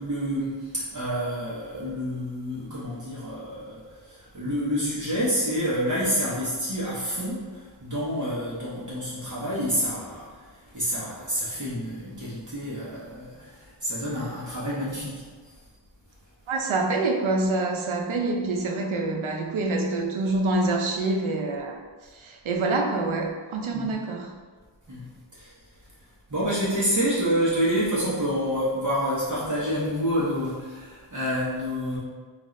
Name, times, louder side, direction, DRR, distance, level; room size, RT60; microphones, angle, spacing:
voice 1, 0.0-10.3 10.7-15.2 23.7-23.9 24.9-25.1 25.3-25.5 26.3-32.0, equal, 40° right, -9 dB, 1.0 m, -28 dB
voice 2, 16.5-21.8 22.2-24.3, right 2 dB, 85° right, 2 dB, 0.6 m, -26 dB
3.8 x 2.5 x 3.1 m, 1.5 s
wide cardioid pair, 90°, 47 cm